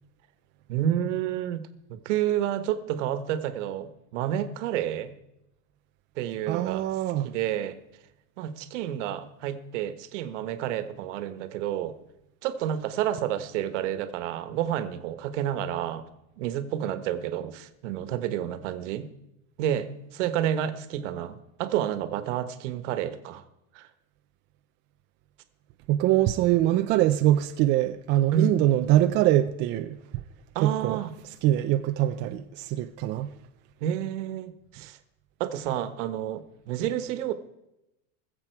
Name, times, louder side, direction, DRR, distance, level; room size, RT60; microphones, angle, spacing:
voice 1, 0.7-1.6 1.9-5.1 6.2-6.8 7.2-7.8 8.4-11.9 12.4-16.0 16.4-19.1 19.6-23.4 23.7-23.9 28.3-28.6 30.5-31.1 33.8-35.0 35.4-37.3, right 10 dB, 70° right, 1.4 m, -30 dB
voice 2, 6.5-7.3 25.9-30.0 30.6-31.0 31.4-33.3, right 13 dB, 30° right, 0.4 m, -23 dB
20.5 x 7.5 x 4.6 m
supercardioid pair, 145°, 38 cm